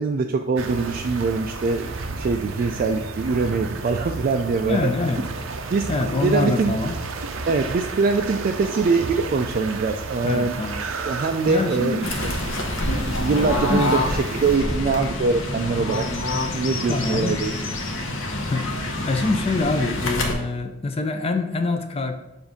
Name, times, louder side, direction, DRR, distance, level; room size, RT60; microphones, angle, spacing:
voice 1, 0.0-4.9 5.7-5.9 6.2-6.7 7.5-10.5 11.0-12.3 13.0-16.0 16.5-17.5, right 4 dB, 45° right, 4 dB, 0.3 m, -23 dB
sound 1, 0.6-14.6, right 3 dB, 90° right, 0.6 m, -32 dB
voice 2, 4.6-5.3 5.9-7.0 10.2-10.8 11.5-12.1 13.7-13.9 16.9-17.4 18.4-22.1, left 3 dB, 30° left, 7 dB, 0.4 m, -25 dB
Fowl / Bird, 12.0-20.3, left 1 dB, 80° left, 0.9 m, -27 dB
7.1 x 2.6 x 5.1 m, 0.92 s
head